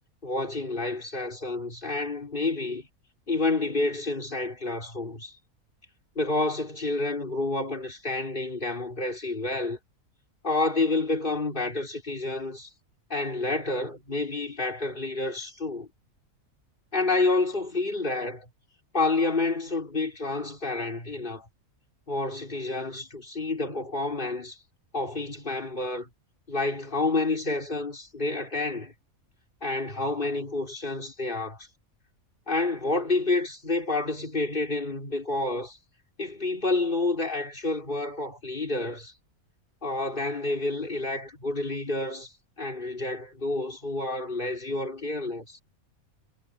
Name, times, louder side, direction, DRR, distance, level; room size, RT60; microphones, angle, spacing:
voice 1, 0.2-2.9 3.3-5.3 6.2-9.8 10.4-12.7 13.1-15.9 16.9-18.5 18.9-21.5 22.1-24.6 24.9-26.1 26.5-28.9 29.6-31.7 32.5-35.8 36.2-39.1 39.8-42.3 42.6-45.6, left 2 dB, 35° left, 4.1 m, -29 dB
omnidirectional pair, 1.5 m